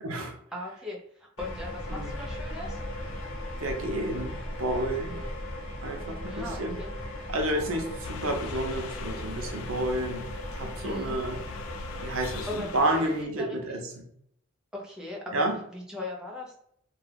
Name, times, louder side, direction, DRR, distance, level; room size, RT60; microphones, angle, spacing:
voice 1, 0.0-0.3 1.9-2.1 3.6-5.2 5.8-6.8 7.3-11.4 12.0-14.1 15.3-15.6, right 1 dB, 80° right, 3 dB, 0.6 m, -30 dB
voice 2, 0.5-2.8 6.3-6.9 10.8-11.2 12.3-13.8 14.7-15.4 15.7-16.6, left 2 dB, 5° right, -3 dB, 0.6 m, -39 dB
sound 1, 1.4-13.0, left 1 dB, 70° left, 0.8 m, -37 dB
sound 2, 8.0-13.2, left 6 dB, 90° left, 0.3 m, -43 dB
2.3 x 2.3 x 3.3 m, 0.68 s
head